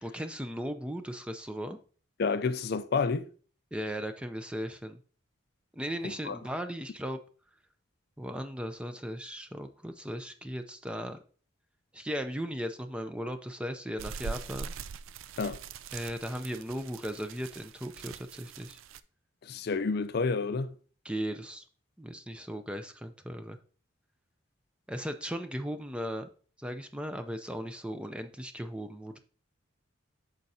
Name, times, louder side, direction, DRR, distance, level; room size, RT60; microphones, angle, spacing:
voice 1, 0.0-1.8 3.7-5.0 5.7-7.2 8.2-11.2 11.9-14.7 15.9-18.8 21.0-21.6 22.0-23.6 24.9-26.3 26.6-29.2, equal, 5° right, 0.5 m, -37 dB
voice 2, 2.2-3.3 6.0-6.4 15.4-15.6 19.4-20.8, left 4 dB, 50° left, 0.4 m, -30 dB
sound 1, 14.0-19.0, right 6 dB, 80° right, 0.4 m, -43 dB
8.9 x 6.4 x 2.7 m
head